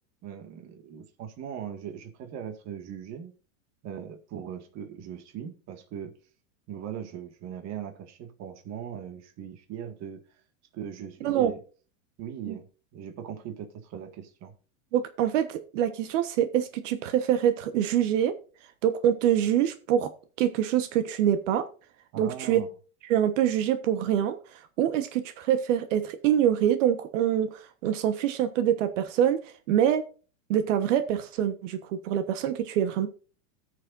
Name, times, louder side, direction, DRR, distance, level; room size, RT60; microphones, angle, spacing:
voice 1, 0.2-3.3 3.8-6.2 6.7-10.2 10.7-11.6 12.2-12.7 12.9-14.5 22.1-22.7, right 8 dB, 40° right, 7 dB, 1.9 m, -39 dB
voice 2, 14.9-18.4 18.8-20.1 20.4-21.7 22.2-22.6 23.1-24.4 24.8-29.4 29.7-30.0 30.5-33.1, right 10 dB, 65° right, 11 dB, 1.2 m, -25 dB
19.0 x 6.7 x 2.6 m, 0.36 s
supercardioid pair, 120°, 40 cm